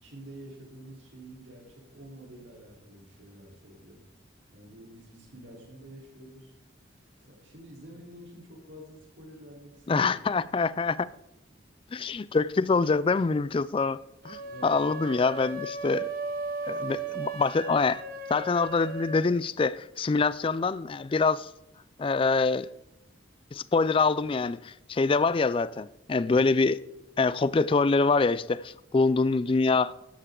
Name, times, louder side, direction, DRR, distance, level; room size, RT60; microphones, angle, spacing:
voice 1, 0.0-4.0 4.5-6.5 7.2-10.1 10.4-10.5 14.4-14.8 15.1-15.2, right 1 dB, 70° right, 3.8 m, -48 dB
voice 2, 9.9-11.1 11.9-16.1 16.7-18.0 18.3-21.5 22.0-22.7 23.5-26.8 27.2-29.9, left 4 dB, 30° left, 0.3 m, -25 dB
sound 1, 14.2-19.2, right 4 dB, 50° right, 1.3 m, -36 dB
13.5 x 11.0 x 3.8 m
head